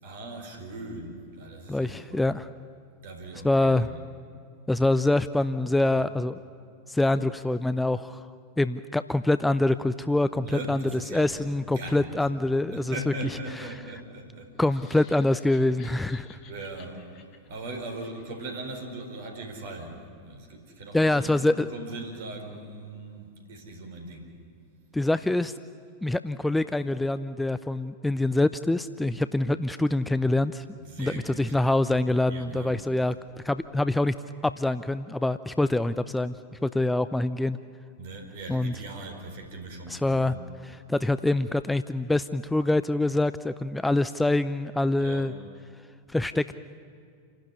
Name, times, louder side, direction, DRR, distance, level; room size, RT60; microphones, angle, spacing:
voice 1, 0.0-2.2 3.0-4.1 10.4-12.2 12.5-14.6 16.4-17.1 17.5-24.4 30.9-31.6 32.3-32.7 38.0-40.5 45.0-45.3, right 2 dB, 55° right, 3 dB, 4.4 m, -39 dB
voice 2, 1.7-2.5 3.4-3.9 4.7-6.4 6.9-8.2 8.6-13.1 13.6-13.7 14.6-16.4 20.9-21.7 24.9-25.5 26.0-30.6 31.0-33.1 33.4-34.1 34.4-36.3 36.6-37.6 38.5-38.7 39.9-40.3 40.6-45.3 46.1-46.6, left 2 dB, 5° left, 13 dB, 0.5 m, -25 dB
sound 1, 14.6-18.8, left 7 dB, 40° left, 2.0 m, -54 dB
28.5 x 12.0 x 9.9 m, 2.3 s
figure-of-eight pair, 90°, 0 cm